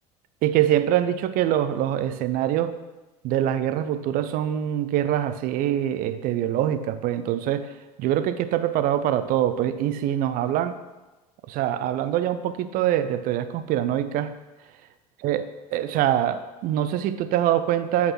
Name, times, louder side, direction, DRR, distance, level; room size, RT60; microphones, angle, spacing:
voice 1, 0.4-2.8 3.2-7.7 8.0-10.7 11.5-14.3 15.2-15.4 15.7-18.1, right 11 dB, 45° right, 11 dB, 0.6 m, -24 dB
7.8 x 4.1 x 6.0 m, 1.1 s
figure-of-eight pair, 70°, 20 cm